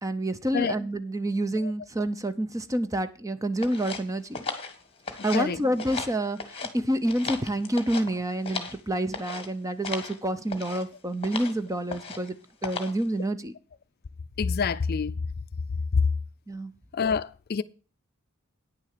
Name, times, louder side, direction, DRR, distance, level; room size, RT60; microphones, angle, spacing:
voice 1, 0.0-4.3 5.2-12.4 12.6-13.5 16.5-16.7, right 1 dB, 15° right, 0.7 m, -28 dB
sound 1, 3.6-5.5 5.8-6.7 7.0-8.8 9.1-9.5 9.8-10.2 10.5-10.8 11.2-11.6 11.9-12.3 12.6-13.0, left 4 dB, 25° left, 1.5 m, -36 dB
voice 2, 14.4-15.1 16.9-17.6, left 5 dB, 50° left, 0.4 m, -27 dB
9.6 x 6.9 x 6.7 m
head